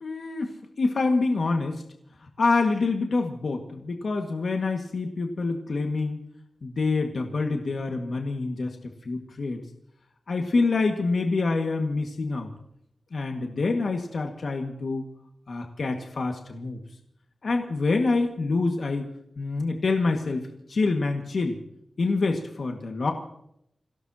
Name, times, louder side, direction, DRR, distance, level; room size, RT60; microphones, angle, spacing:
voice 1, 0.0-1.8 2.4-6.2 6.6-8.8 9.1-9.6 10.3-12.5 13.1-15.1 15.5-16.8 17.4-19.1 19.4-21.6 22.0-23.1, left 3 dB, 60° left, 3 dB, 1.9 m, -26 dB
28.0 x 17.5 x 2.9 m, 0.75 s
wide cardioid pair, 110°, 0 cm